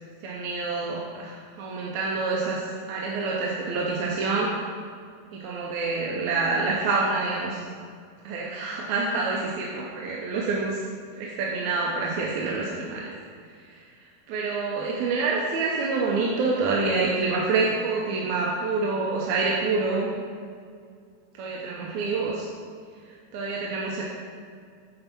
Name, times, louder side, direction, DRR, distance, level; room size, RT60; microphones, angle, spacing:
voice 1, 0.2-4.6 5.3-7.6 8.2-10.8 11.2-13.1 13.7-13.8 14.3-20.1 21.4-22.5 23.1-24.0, right 3 dB, 75° right, -3 dB, 2.0 m, -27 dB
8.9 x 4.6 x 5.8 m, 2.2 s
omnidirectional pair, 3.8 m